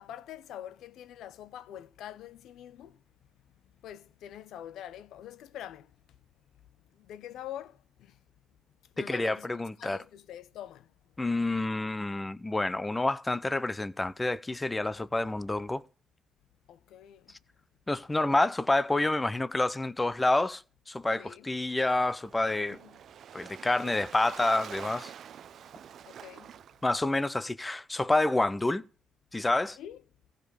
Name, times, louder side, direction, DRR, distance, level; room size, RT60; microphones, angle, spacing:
voice 1, 0.0-3.0 3.8-6.0 6.9-8.2 9.0-10.9 15.1-15.3 16.7-17.4 21.2-21.5 22.7-23.0 26.1-26.6 29.8-30.0, left 11 dB, 80° left, 0.6 m, -45 dB
voice 2, 9.0-10.0 11.2-15.8 17.9-22.8 23.3-25.1 26.8-28.8 29.3-29.8, left 2 dB, 15° left, 0.6 m, -28 dB
Waves surf, 21.5-27.2, right 9 dB, 65° right, 0.5 m, -47 dB
15.5 x 5.3 x 6.3 m
cardioid pair, 90°, 0 cm